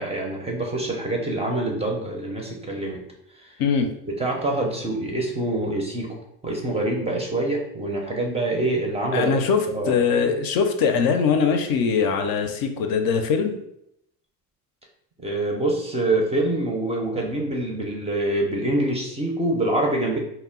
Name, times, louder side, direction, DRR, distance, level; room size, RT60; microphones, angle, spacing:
voice 1, 0.0-3.0 3.4-3.5 4.1-6.2 6.4-9.4 9.7-10.0 15.2-20.2, right 2 dB, 15° right, 0 dB, 0.4 m, -25 dB
voice 2, 9.1-13.5, left 6 dB, 55° left, 5 dB, 0.5 m, -22 dB
2.1 x 2.0 x 3.6 m, 0.77 s
supercardioid pair, 90°, 42 cm